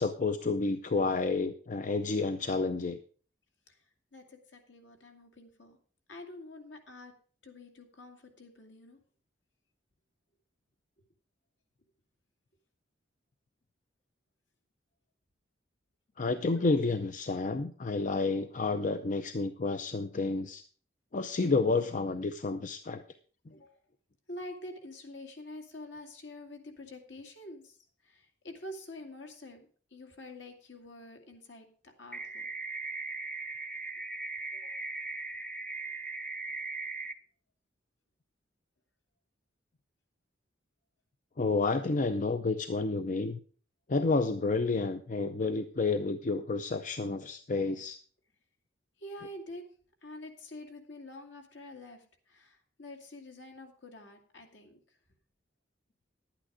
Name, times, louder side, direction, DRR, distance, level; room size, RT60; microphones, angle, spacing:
voice 1, 0.0-3.0 16.2-20.6 21.1-23.0 23.5-23.6 41.4-43.4 43.9-48.0, left 3 dB, 45° left, 9 dB, 0.6 m, -30 dB
voice 2, 4.1-5.8 6.1-7.1 7.4-9.0 23.5-23.8 24.3-27.8 28.0-32.5 34.5-34.9 49.0-49.7 50.0-54.8, left 1 dB, 70° left, 4 dB, 2.2 m, -47 dB
sound 1, 32.1-37.1, right 3 dB, 5° left, 0.7 m, -38 dB
11.0 x 9.0 x 5.0 m, 0.42 s
head